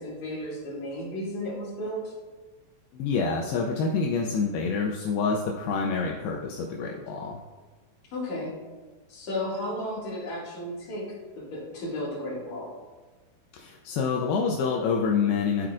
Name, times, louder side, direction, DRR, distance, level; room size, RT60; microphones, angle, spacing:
voice 1, 0.0-2.1 8.1-8.6 9.1-12.7, left 1 dB, 50° left, -7 dB, 2.9 m, -34 dB
voice 2, 2.9-7.4 13.5-15.7, left 5 dB, 80° left, 0 dB, 2.3 m, -27 dB
13.0 x 4.5 x 2.5 m, 1.3 s
omnidirectional pair, 4.9 m